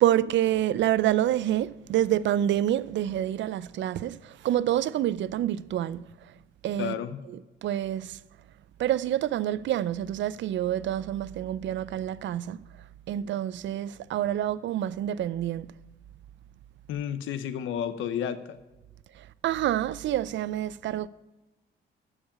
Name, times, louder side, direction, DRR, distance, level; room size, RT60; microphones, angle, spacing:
voice 1, 0.0-6.3 6.6-7.0 7.3-8.2 8.8-12.6 13.1-15.7 19.1-21.1, right 12 dB, 70° right, 0.5 m, -27 dB
voice 2, 6.8-7.2 16.9-18.6, left 9 dB, 85° left, 0.8 m, -31 dB
12.5 x 5.0 x 8.5 m
cardioid pair, 90°, 20 cm